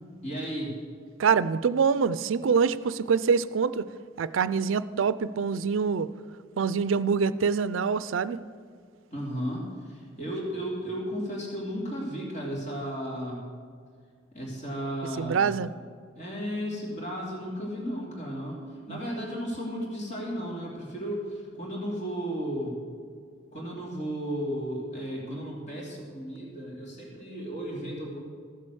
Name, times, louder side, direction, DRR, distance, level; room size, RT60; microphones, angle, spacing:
voice 1, 0.2-0.7 9.1-13.4 14.3-15.5 16.2-22.8 23.5-28.2, equal, 40° left, -4 dB, 2.8 m, -34 dB
voice 2, 1.2-3.9 4.2-6.1 6.6-8.4 15.2-15.7 18.9-19.0, right 6 dB, 70° right, 16 dB, 0.4 m, -25 dB
14.5 x 7.6 x 6.3 m, 2.1 s
head